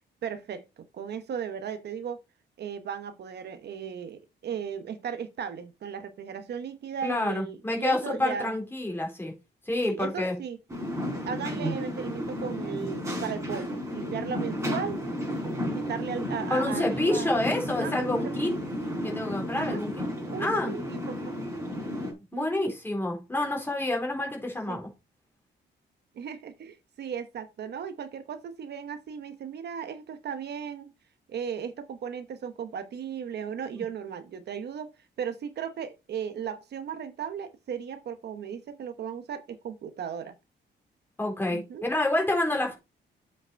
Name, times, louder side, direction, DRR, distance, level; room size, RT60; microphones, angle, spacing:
voice 1, 0.2-0.6 0.9-2.2 2.6-8.5 9.8-10.6 11.3-15.0 15.7-17.3 17.7-18.6 19.6-19.8 20.3-21.3 22.3-22.8 24.7-24.8 26.2-30.9 31.3-34.9 35.2-40.4 41.5-41.8, right 7 dB, 60° right, 1.0 m, -36 dB
voice 2, 7.0-9.3 9.7-10.3 16.5-18.5 19.0-19.9 20.4-20.7 22.3-24.9 41.2-42.8, left 1 dB, 10° left, 4.1 m, -28 dB
sound 1, 10.7-22.1, equal, 15° right, 4.6 m, -33 dB
7.7 x 5.7 x 4.5 m
wide cardioid pair, 155°, 19 cm